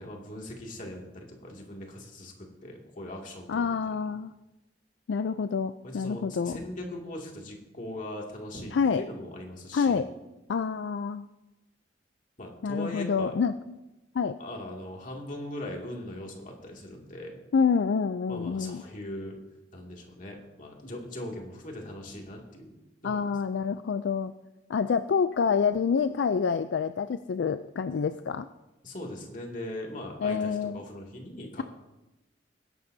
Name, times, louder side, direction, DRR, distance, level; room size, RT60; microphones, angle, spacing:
voice 1, 0.0-3.9 5.8-10.0 12.4-13.3 14.4-17.4 18.3-19.3 19.7-22.7 23.0-23.2 28.8-31.6, left 1 dB, 45° left, 0 dB, 2.3 m, -40 dB
voice 2, 3.5-4.3 5.1-6.6 8.7-9.0 9.7-10.1 10.5-11.3 12.6-13.8 14.1-14.4 17.5-18.8 23.0-24.3 24.7-28.5 30.2-30.8, left 6 dB, 70° left, 11 dB, 0.4 m, -27 dB
21.0 x 11.0 x 2.7 m, 1.0 s
head